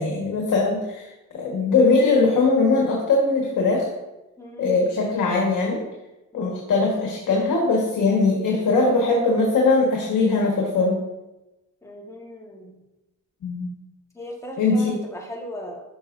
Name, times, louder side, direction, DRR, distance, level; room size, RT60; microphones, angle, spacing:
voice 1, 0.0-3.9 4.6-5.8 6.3-11.0 13.4-13.7 14.6-15.0, left 3 dB, 75° left, -1 dB, 1.5 m, -21 dB
voice 2, 4.4-4.7 6.3-6.6 11.8-12.8 14.1-15.8, left 1 dB, 10° left, -1 dB, 1.5 m, -37 dB
12.5 x 6.0 x 2.6 m, 1.0 s
cardioid pair, 125°, 31 cm